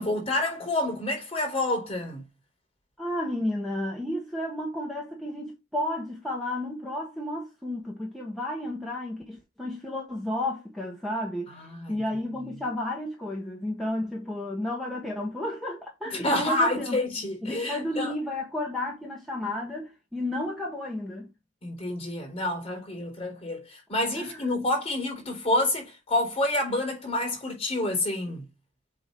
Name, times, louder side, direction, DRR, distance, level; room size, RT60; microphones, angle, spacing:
voice 1, 0.0-2.2 11.7-12.0 16.1-18.1 21.6-28.4, left 1 dB, 30° left, 4.0 m, -28 dB
voice 2, 3.0-11.5 11.9-17.0 17.4-21.3 24.1-24.5, left 1 dB, ahead, 1.2 m, -32 dB
7.9 x 2.8 x 5.1 m
head